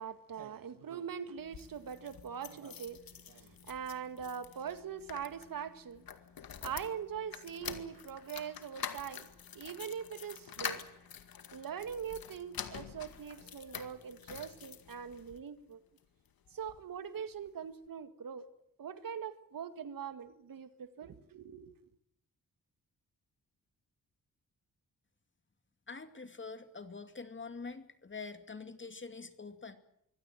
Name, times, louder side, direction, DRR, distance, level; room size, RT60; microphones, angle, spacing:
voice 1, 0.0-6.0 6.6-9.3 9.5-10.8 11.5-15.8 16.5-18.5 18.8-21.7, right 7 dB, 70° right, 11 dB, 1.9 m, -42 dB
sound 1, 1.4-15.4 16.0-16.8 17.1-17.2 17.5-17.6, left 8 dB, 80° left, 2.1 m, -47 dB
voice 2, 25.9-29.8, left 4 dB, 35° left, 9 dB, 2.5 m, -45 dB
24.0 x 16.5 x 9.2 m, 0.75 s
cardioid pair, 85°, 35 cm